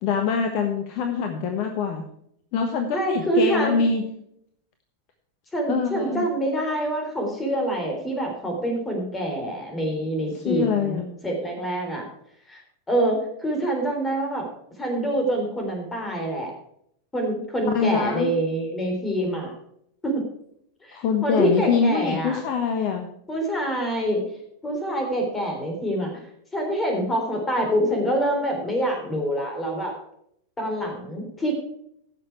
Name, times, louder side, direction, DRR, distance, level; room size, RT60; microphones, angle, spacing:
voice 1, 0.0-2.0 2.5-4.0 5.7-6.3 10.4-11.2 17.7-18.3 20.9-23.1, left 5 dB, 45° left, 5 dB, 1.2 m, -24 dB
voice 2, 2.9-3.8 5.5-12.0 12.5-12.6 12.9-14.5 14.8-16.5 17.1-19.5 20.0-20.2 20.8-22.4 23.3-24.2 24.6-26.2 26.5-29.9 30.6-31.5, right 1 dB, 15° left, 2 dB, 3.6 m, -26 dB
15.5 x 6.7 x 4.7 m, 0.72 s
figure-of-eight pair, 90°, 0 cm